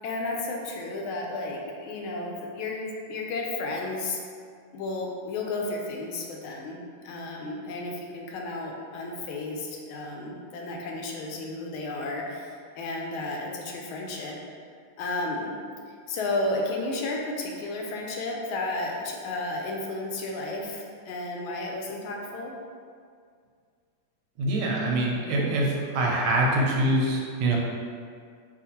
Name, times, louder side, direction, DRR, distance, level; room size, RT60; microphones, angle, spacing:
voice 1, 0.0-4.2 4.7-14.3 15.0-15.5 16.1-22.5, left 2 dB, 80° left, 0 dB, 1.4 m, -33 dB
voice 2, 24.4-27.6, right 1 dB, 85° right, -2 dB, 1.5 m, -24 dB
5.2 x 2.5 x 2.8 m, 2.1 s
omnidirectional pair, 2.3 m